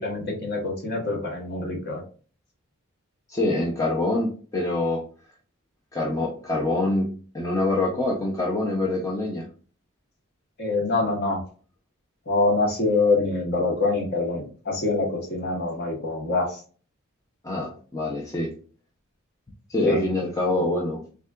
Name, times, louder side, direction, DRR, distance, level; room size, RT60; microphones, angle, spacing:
voice 1, 0.0-2.0 10.6-11.4 12.3-16.6 19.9-20.0, left 3 dB, 50° left, 0 dB, 1.0 m, -25 dB
voice 2, 3.3-5.0 5.9-7.1 7.3-9.5 17.4-18.5 19.7-21.0, left 2 dB, 15° left, -2 dB, 0.4 m, -25 dB
3.5 x 2.3 x 2.2 m, 0.40 s
head